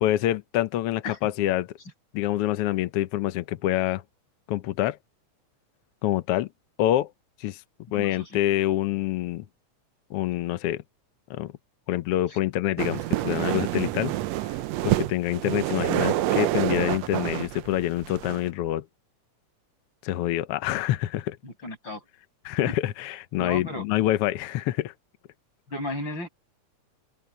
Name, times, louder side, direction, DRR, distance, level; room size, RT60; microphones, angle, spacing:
voice 1, 0.0-1.7 2.1-4.0 4.5-5.0 6.0-6.5 6.8-7.1 7.4-7.6 7.9-9.4 10.1-10.8 11.3-11.5 11.9-14.1 14.8-18.8 20.0-21.4 22.4-24.9, left 13 dB, 80° left, 1.3 m, -26 dB
voice 2, 7.9-8.4 12.3-12.4 21.4-22.0 22.6-22.7 23.4-23.9 25.7-26.3, left 2 dB, 35° left, 8.5 m, -34 dB
sound 1, 12.8-18.5, right 15 dB, 75° right, 1.6 m, -27 dB
open air
omnidirectional pair, 3.6 m